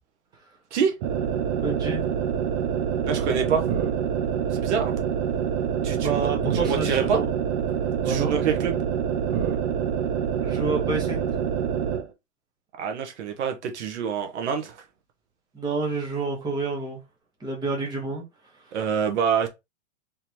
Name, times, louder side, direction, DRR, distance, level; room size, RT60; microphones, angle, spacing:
sound 1, 1.0-12.1, right 8 dB, 25° right, 0.5 m, -26 dB
voice 1, 1.6-2.1 6.0-7.2 8.0-8.4 10.4-11.3 15.5-17.0 17.4-18.2, right 3 dB, 10° right, 1.3 m, -29 dB
voice 2, 3.0-3.6 4.5-4.9 5.8-6.2 6.5-7.2 8.0-8.8 12.8-14.7 18.7-19.5, right 7 dB, 60° right, 1.1 m, -26 dB
3.9 x 3.4 x 2.9 m
hypercardioid pair, 150°, 40 cm